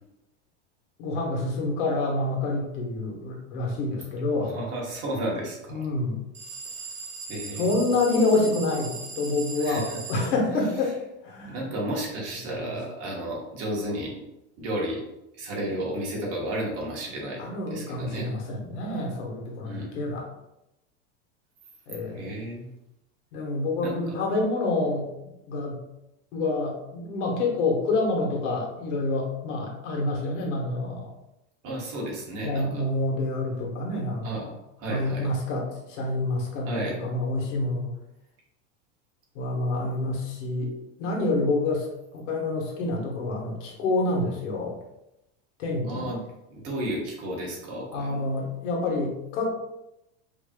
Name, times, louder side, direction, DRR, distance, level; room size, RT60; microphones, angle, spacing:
voice 1, 1.0-4.5 5.7-6.2 7.6-10.9 11.2-11.6 12.5-12.7 17.4-20.3 21.9-22.3 23.3-25.1 25.5-25.8 26.3-31.1 32.4-34.5 34.9-37.9 39.3-40.7 41.0-41.9 42.1-44.8 45.6-46.2 47.9-49.5, left 2 dB, 75° left, -1 dB, 1.3 m, -27 dB
voice 2, 4.3-5.9 7.3-7.7 9.6-10.0 11.4-14.2 14.6-15.0 15.4-18.3 19.6-19.9 22.1-22.7 23.8-23.9 31.6-32.8 34.2-34.5 34.8-35.3 36.6-37.0 45.8-46.2 46.5-48.2, right 1 dB, 40° right, -2 dB, 1.2 m, -32 dB
sound 1, 6.3-10.3, right 4 dB, 20° right, 0.5 m, -38 dB
5.0 x 2.9 x 2.3 m, 0.90 s
supercardioid pair, 155°, 37 cm